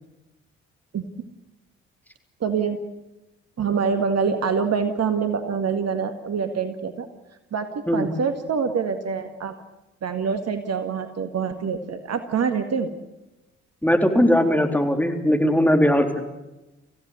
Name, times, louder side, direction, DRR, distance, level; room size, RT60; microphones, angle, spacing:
voice 1, 2.4-2.8 3.6-7.1 7.5-9.6 10.0-12.9, right 6 dB, 45° right, 8 dB, 1.9 m, -25 dB
voice 2, 13.8-16.1, equal, 5° left, 4 dB, 3.8 m, -19 dB
26.0 x 16.0 x 8.2 m, 0.99 s
figure-of-eight pair, 45°, 36 cm